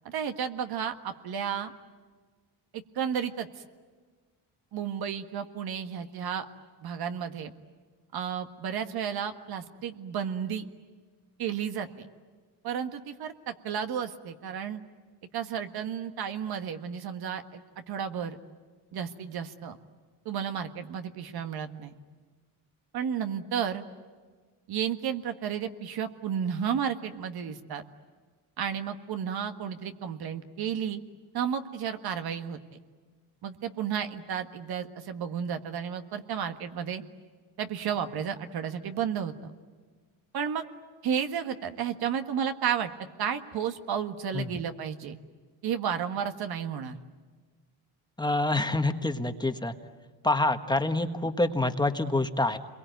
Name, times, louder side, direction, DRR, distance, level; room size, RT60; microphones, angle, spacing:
voice 1, 0.1-1.7 2.7-3.5 4.7-6.5 6.8-7.5 8.1-10.6 11.4-11.9 12.6-14.8 15.3-17.6 17.9-18.4 18.9-19.8 20.3-21.9 22.9-23.8 24.7-27.8 28.6-31.0 31.3-32.6 33.4-37.0 37.6-39.3 40.3-40.7 41.0-42.9 43.2-45.2 45.6-47.0, right 8 dB, 65° right, 7 dB, 1.7 m, -32 dB
voice 2, 48.2-49.7 50.2-52.6, left 2 dB, 10° left, 7 dB, 1.4 m, -26 dB
28.5 x 22.5 x 9.4 m, 1.5 s
cardioid pair, 115°, 40 cm